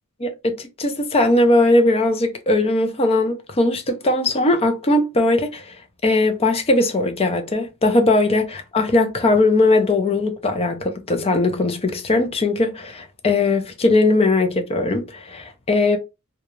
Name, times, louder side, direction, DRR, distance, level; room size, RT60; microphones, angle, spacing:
voice 1, 0.2-5.8 6.0-16.0, left 2 dB, 25° left, 0.4 m, -19 dB
2.3 x 2.2 x 2.9 m
head